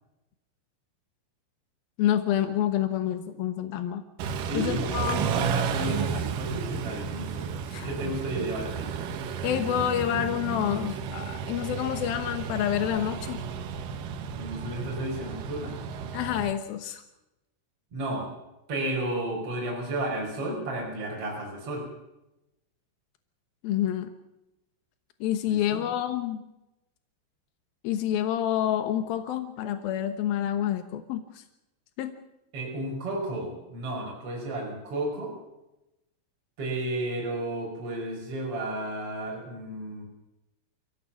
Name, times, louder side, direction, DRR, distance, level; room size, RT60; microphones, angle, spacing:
voice 1, 2.0-4.0 4.5-5.3 7.7-7.9 9.4-13.4 16.1-17.0 23.6-24.1 25.2-26.4 27.8-31.4 32.0-32.2, left 11 dB, 70° left, 8 dB, 2.3 m, -28 dB
Car / Idling / Accelerating revving vroom, 4.2-16.5, right 7 dB, 75° right, 1.9 m, -33 dB
voice 2, 4.4-7.5 7.8-8.9 14.3-15.7 17.9-18.3 18.7-21.8 25.5-25.8 32.5-35.3 36.6-40.1, right 1 dB, 30° right, -2 dB, 6.3 m, -32 dB
29.0 x 16.5 x 7.2 m, 0.94 s
omnidirectional pair, 5.8 m